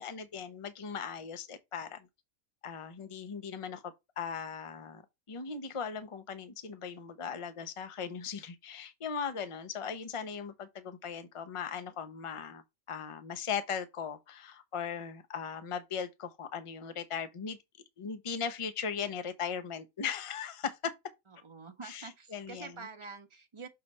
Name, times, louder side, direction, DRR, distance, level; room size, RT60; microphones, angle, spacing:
voice 1, 0.0-2.1 2.6-5.0 5.3-12.6 12.9-17.6 18.0-20.9 21.8-22.7, left 6 dB, 30° left, 0.7 m, -38 dB
voice 2, 21.3-23.7, right 4 dB, 25° right, 1.0 m, -47 dB
6.7 x 3.3 x 5.3 m
omnidirectional pair, 1.4 m